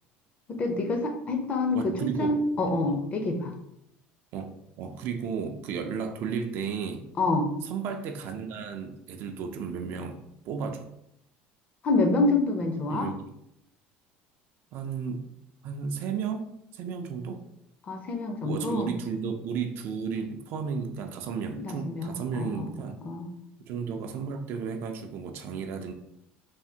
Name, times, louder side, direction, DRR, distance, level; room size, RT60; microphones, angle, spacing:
voice 1, 0.5-3.5 7.2-7.5 11.8-13.1 17.9-18.9 21.5-22.7 23.0-23.3, left 2 dB, 35° left, 4 dB, 0.6 m, -27 dB
voice 2, 1.7-2.4 2.7-2.8 4.3-7.0 7.6-10.2 10.4-10.8 12.9-13.2 14.7-15.2 15.6-17.4 18.4-22.9 23.7-25.9, right 6 dB, 60° right, 5 dB, 0.4 m, -33 dB
3.4 x 2.0 x 2.7 m, 0.77 s
cardioid pair, 120°, 4 cm